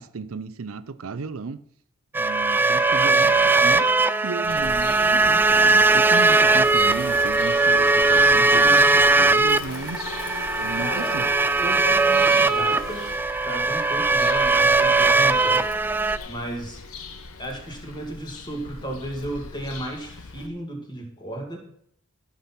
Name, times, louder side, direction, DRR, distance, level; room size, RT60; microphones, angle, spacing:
voice 1, 0.0-1.6 2.1-10.1 10.5-11.3, right 4 dB, 75° right, 0.6 m, -34 dB
sound 1, 2.1-16.2, right 3 dB, 10° right, 0.3 m, -19 dB
Bird vocalization bird call bird song, 4.5-20.5, left 3 dB, 80° left, 1.2 m, -41 dB
sound 2, 7.0-13.2, left 2 dB, 65° left, 1.4 m, -40 dB
voice 2, 10.8-11.2 11.6-13.1 13.4-15.7 16.3-16.8 17.4-21.7, right 1 dB, 20° left, 2.3 m, -34 dB
13.0 x 6.0 x 5.9 m
head